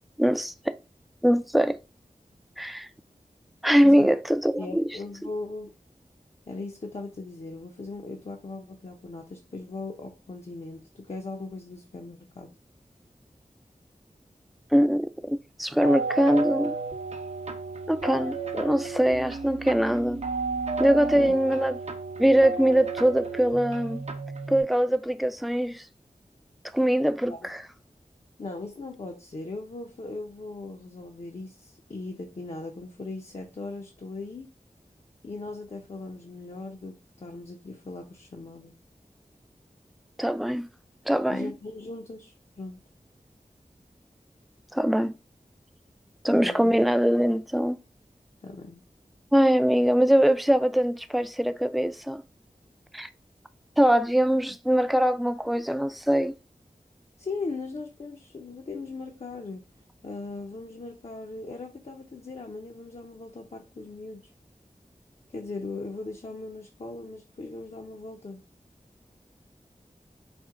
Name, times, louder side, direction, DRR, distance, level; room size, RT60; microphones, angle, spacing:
voice 1, 0.2-0.7 1.2-1.8 2.6-2.9 3.6-4.9 14.7-16.7 17.9-20.2 20.8-21.8 22.2-24.0 24.5-25.8 26.7-27.6 40.2-40.7 41.1-41.5 44.7-45.1 46.2-47.8 49.3-52.2 52.9-53.1 53.8-56.4, equal, ahead, 0.3 m, -22 dB
voice 2, 3.8-4.1 4.6-5.7 6.5-12.5 21.1-21.3 27.3-27.5 28.4-34.5 35.2-38.7 41.3-42.8 46.3-46.7 48.4-48.8 57.2-59.7 60.0-64.2 65.3-68.4, left 3 dB, 50° left, 0.6 m, -39 dB
sound 1, 15.8-24.6, right 4 dB, 55° right, 0.6 m, -33 dB
4.3 x 2.1 x 3.6 m
wide cardioid pair, 55°, 14 cm